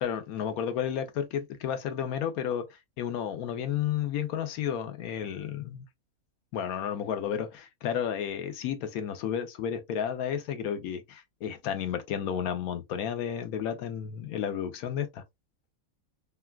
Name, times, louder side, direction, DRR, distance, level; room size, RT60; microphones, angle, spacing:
voice 1, 0.0-5.8 6.5-15.2, left 9 dB, 90° left, 1.1 m, -32 dB
3.4 x 2.2 x 2.2 m
omnidirectional pair, 1.5 m